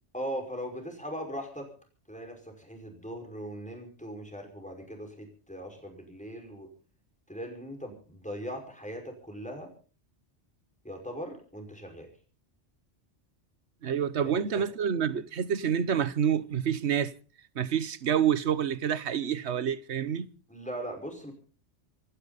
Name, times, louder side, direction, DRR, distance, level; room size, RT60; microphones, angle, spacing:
voice 1, 0.1-1.7 2.1-6.7 7.3-9.7 10.8-12.1 14.2-14.7 20.5-21.3, equal, 5° left, 5.3 m, -39 dB
voice 2, 13.8-17.1 17.5-20.3, right 8 dB, 65° right, 1.2 m, -28 dB
27.0 x 11.5 x 4.1 m
omnidirectional pair, 1.2 m